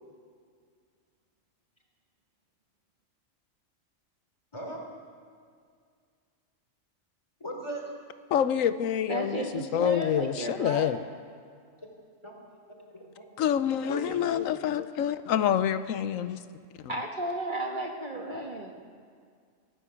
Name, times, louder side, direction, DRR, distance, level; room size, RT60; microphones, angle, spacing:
voice 1, 4.5-4.9 7.4-7.9 11.8-11.9 12.2-12.4 12.7-13.3 13.9-14.4, right 1 dB, 20° left, 1 dB, 3.6 m, -38 dB
voice 2, 8.3-11.0 13.4-16.4 16.8-16.9, left 9 dB, 90° left, 12 dB, 1.1 m, -27 dB
voice 3, 9.1-11.0 16.9-18.7, right 1 dB, 40° right, 1 dB, 1.8 m, -33 dB
24.5 x 15.5 x 7.0 m, 2.1 s
omnidirectional pair, 1.3 m